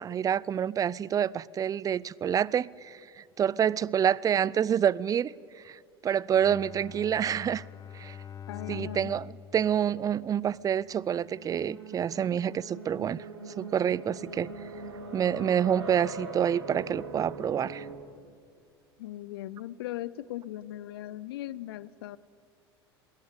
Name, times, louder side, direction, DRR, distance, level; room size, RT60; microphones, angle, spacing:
voice 1, 0.0-3.0 3.4-5.3 5.7-5.8 6.0-7.6 7.9-8.1 8.7-13.2 13.6-14.5 15.1-17.9, right 9 dB, 25° right, 0.5 m, -27 dB
Bowed string instrument, 6.3-10.7, left 8 dB, 25° left, 0.8 m, -45 dB
voice 2, 8.5-9.2 19.0-22.2, left 14 dB, 70° left, 0.6 m, -39 dB
sound 1, 10.8-18.0, right 3 dB, 85° right, 3.5 m, -42 dB
20.0 x 19.0 x 8.8 m
hypercardioid pair, 80°, 13 cm